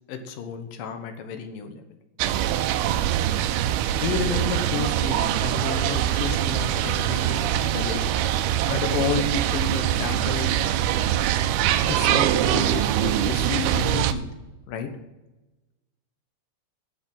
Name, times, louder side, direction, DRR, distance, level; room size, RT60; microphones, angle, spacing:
voice 1, 0.1-1.8 3.9-8.1 8.7-10.6 11.9-14.2 14.7-14.9, left 6 dB, 65° left, 7 dB, 2.4 m, -31 dB
sound 1, 2.2-14.1, right 11 dB, 80° right, 2.4 m, -23 dB
10.5 x 8.1 x 8.7 m, 1.0 s
omnidirectional pair, 4.9 m